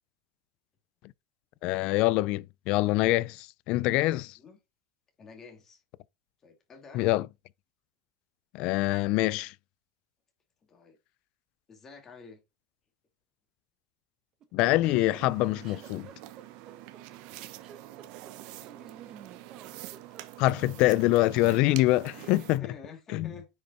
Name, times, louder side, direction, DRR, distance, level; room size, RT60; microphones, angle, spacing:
voice 1, 1.6-4.3 6.9-7.3 8.5-9.5 14.5-16.1 20.4-22.7 23.1-23.3, left 18 dB, 45° left, 0.4 m, -25 dB
voice 2, 5.2-5.8 6.4-7.1 10.6-11.0 11.7-12.4 18.0-19.0 22.2-23.5, left 4 dB, 20° left, 2.6 m, -50 dB
sound 1, 14.4-20.7, right 8 dB, 30° right, 1.2 m, -51 dB
sound 2, 14.8-22.6, right 15 dB, 50° right, 0.9 m, -46 dB
9.5 x 5.3 x 4.2 m
supercardioid pair, 170°, 2 cm